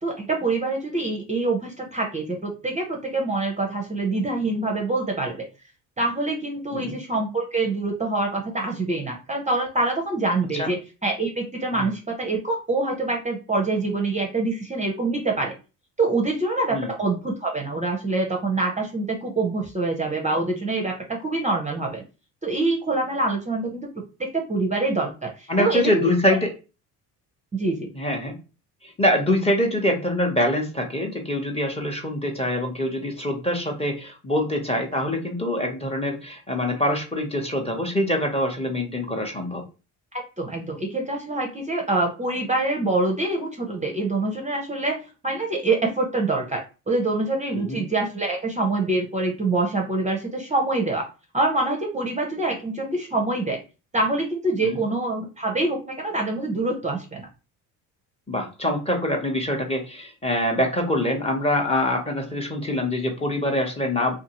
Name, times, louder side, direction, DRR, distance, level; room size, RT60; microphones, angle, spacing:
voice 1, 0.0-5.4 6.0-15.5 16.0-22.0 22.4-23.9 24.2-26.1 27.5-27.9 40.1-45.0 45.2-51.0 51.3-53.6 53.9-57.3, right 2 dB, 20° right, 1 dB, 0.6 m, -25 dB
voice 2, 25.5-26.5 27.9-28.3 28.8-39.6 47.5-47.8 54.6-54.8 58.3-64.2, left 1 dB, 15° left, 1 dB, 0.8 m, -24 dB
2.6 x 2.4 x 2.9 m, 0.32 s
supercardioid pair, 80°, 39 cm